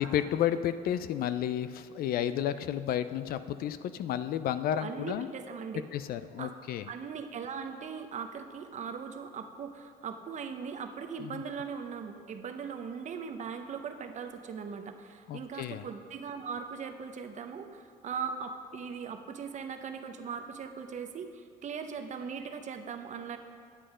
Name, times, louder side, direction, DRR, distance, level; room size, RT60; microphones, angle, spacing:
voice 1, 0.0-5.3 5.9-6.8 11.2-11.4 15.3-15.9, left 10 dB, 60° left, 13 dB, 0.4 m, -32 dB
voice 2, 4.8-5.8 6.4-6.5 6.9-23.4, right 6 dB, 45° right, 6 dB, 0.8 m, -39 dB
9.9 x 7.7 x 5.0 m, 2.2 s
cardioid pair, 110°, 17 cm